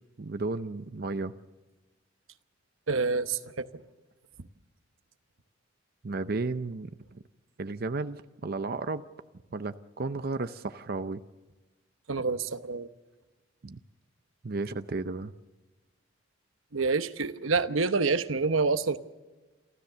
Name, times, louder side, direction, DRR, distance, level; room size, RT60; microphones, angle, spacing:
voice 1, 0.2-1.3 6.0-6.9 7.6-9.0 9.5-11.2 13.6-13.8 14.4-15.3, right 3 dB, 50° right, 10 dB, 0.6 m, -33 dB
voice 2, 2.9-3.8 12.1-12.9 16.7-19.0, right 4 dB, 85° right, 11 dB, 0.9 m, -27 dB
28.5 x 13.5 x 6.8 m, 1.2 s
head